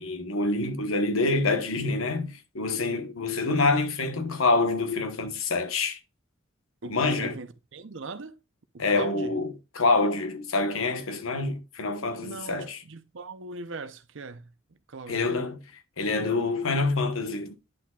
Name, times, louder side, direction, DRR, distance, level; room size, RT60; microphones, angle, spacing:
voice 1, 0.0-6.0 6.9-7.4 8.8-12.8 15.1-15.6 16.0-17.6, left 3 dB, 90° left, 1.1 m, -26 dB
voice 2, 6.8-8.4 8.7-9.4 12.2-15.3, right 3 dB, 65° right, 0.7 m, -40 dB
10.5 x 5.9 x 2.3 m
head